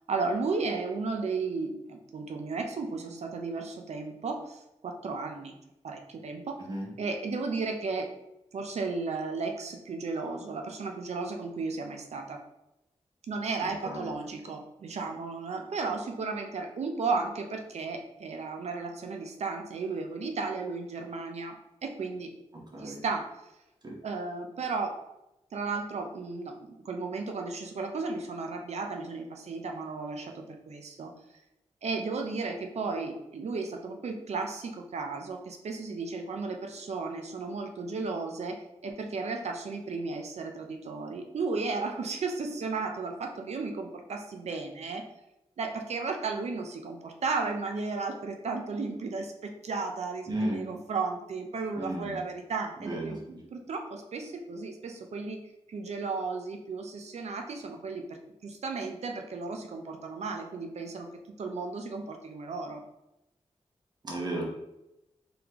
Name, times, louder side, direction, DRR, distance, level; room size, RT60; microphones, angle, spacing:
voice 1, 0.1-5.6 5.8-6.6 7.0-8.1 8.5-12.4 13.3-21.6 21.8-22.3 22.8-23.3 24.0-25.0 25.5-31.1 31.8-45.0 45.6-53.2 53.5-55.4 55.7-61.1 61.4-62.8, right 4 dB, 70° right, 3 dB, 0.6 m, -34 dB
voice 2, 13.6-14.1 22.5-23.0 23.8-24.0 50.3-50.6 51.8-52.2 52.8-53.4 64.0-64.4, right 1 dB, 35° right, -2 dB, 1.0 m, -34 dB
3.9 x 3.3 x 2.9 m, 0.90 s
wide cardioid pair, 180°, 12 cm